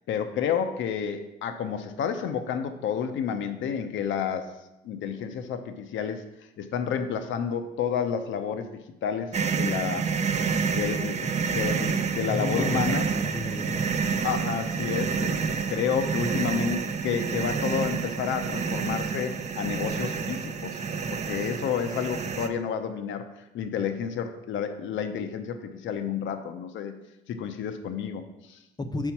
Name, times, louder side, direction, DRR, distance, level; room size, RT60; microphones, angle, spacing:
voice 1, 0.1-4.5 4.8-6.2 6.6-10.1 10.7-13.1 14.2-20.8 21.1-26.9 27.3-28.6, left 7 dB, 75° left, 8 dB, 0.6 m, -30 dB
sound 1, 9.3-22.5, right 6 dB, 35° right, 0.5 m, -28 dB
voice 2, 12.3-14.0 28.8-29.1, left 2 dB, 20° left, 7 dB, 0.6 m, -33 dB
4.4 x 4.4 x 5.8 m, 0.93 s
cardioid pair, 90°, 20 cm